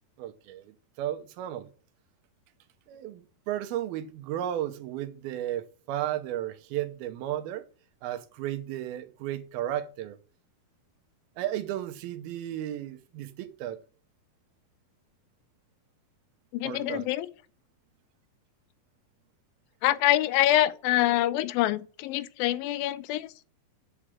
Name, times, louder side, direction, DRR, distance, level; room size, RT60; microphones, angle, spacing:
voice 1, 0.2-1.7 2.9-7.7 8.0-10.2 11.4-13.8 16.6-17.1, right 12 dB, 85° right, 2.7 m, -34 dB
voice 2, 16.5-17.3 19.8-23.3, left 14 dB, 80° left, 2.3 m, -25 dB
7.9 x 4.9 x 7.4 m
omnidirectional pair, 4.2 m